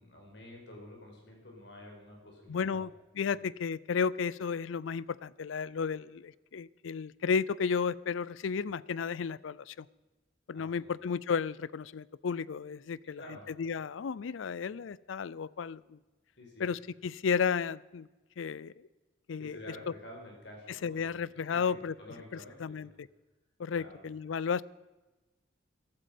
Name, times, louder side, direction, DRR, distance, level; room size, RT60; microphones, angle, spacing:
voice 1, 0.0-2.8 10.5-10.9 13.2-13.7 16.4-16.7 19.4-22.9 23.7-24.0, left 1 dB, 60° left, 4.9 m, -50 dB
voice 2, 2.5-2.9 3.2-9.9 10.5-13.2 13.6-16.0 16.6-18.1 18.4-18.9 19.3-19.6 20.8-21.9 22.3-23.1 23.6-24.6, left 6 dB, 85° left, 0.4 m, -33 dB
15.0 x 12.5 x 5.2 m
head